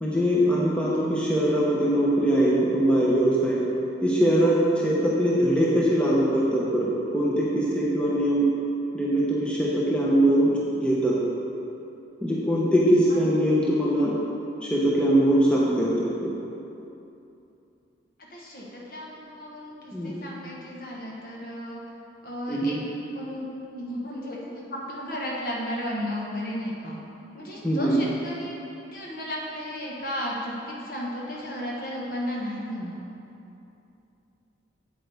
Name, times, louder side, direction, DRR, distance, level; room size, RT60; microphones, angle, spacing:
voice 1, 0.0-3.6 4.0-8.5 8.9-10.5 10.8-11.2 12.2-14.2 14.7-16.1 19.9-20.1 22.5-22.8 27.6-28.0, right 1 dB, 5° left, -7 dB, 0.9 m, -22 dB
voice 2, 18.3-21.8 22.2-23.5 23.7-27.0 27.3-28.5 28.9-33.0, equal, 50° left, -4 dB, 1.3 m, -34 dB
8.3 x 8.1 x 3.5 m, 2.8 s
head